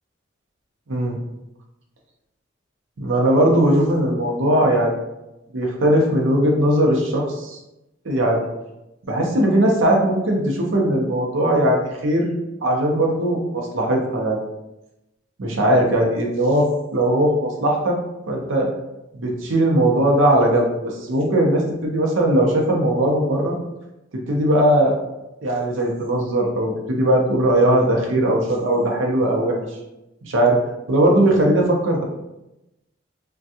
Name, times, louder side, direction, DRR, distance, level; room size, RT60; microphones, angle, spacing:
voice 1, 3.0-4.9 5.5-7.6 8.0-8.5 9.0-12.3 12.6-14.4 15.4-18.0 18.3-18.7 19.1-23.6 24.3-24.9 25.4-29.6 30.2-30.6 30.9-32.0, right 1 dB, 75° right, 0 dB, 0.6 m, -19 dB
3.4 x 2.2 x 2.7 m, 0.94 s
head